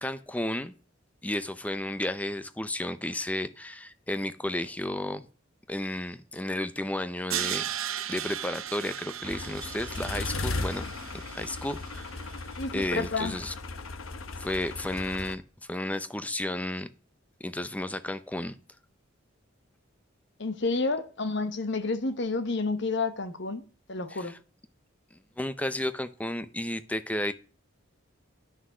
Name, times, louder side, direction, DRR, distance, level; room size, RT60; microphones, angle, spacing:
voice 1, 0.0-0.7 1.2-5.3 5.7-7.6 8.1-10.9 11.3-12.1 12.7-13.5 14.4-15.4 15.7-16.9 17.4-18.6 24.1-24.3 25.4-27.3, left 1 dB, 5° left, 0.6 m, -32 dB
Crash cymbal, 7.3-12.3, right 11 dB, 90° right, 0.8 m, -36 dB
sound 1, 9.2-15.4, left 3 dB, 85° left, 1.0 m, -36 dB
voice 2, 12.6-13.4 20.4-24.4, left 3 dB, 60° left, 1.1 m, -30 dB
9.5 x 6.3 x 6.2 m
head